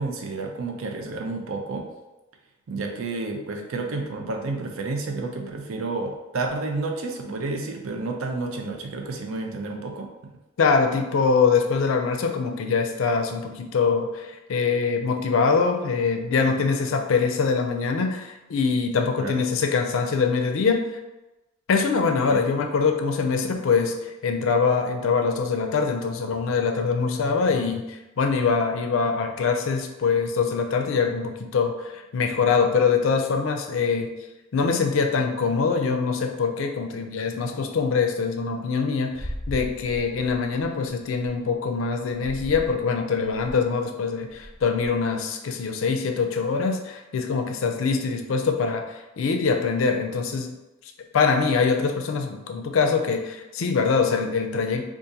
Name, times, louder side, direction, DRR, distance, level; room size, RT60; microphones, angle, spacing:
voice 1, 0.0-1.9 2.7-10.1 19.2-19.4 22.3-22.4, right 3 dB, 85° right, 3 dB, 0.5 m, -30 dB
voice 2, 10.6-20.9 21.7-34.1 34.5-50.5 51.1-54.8, left 5 dB, 75° left, 5 dB, 0.4 m, -23 dB
sound 1, 39.1-41.3 42.1-42.8 43.2-43.7 44.2-44.9, equal, 10° left, 0.7 m, -37 dB
2.7 x 2.4 x 3.7 m, 1.0 s
head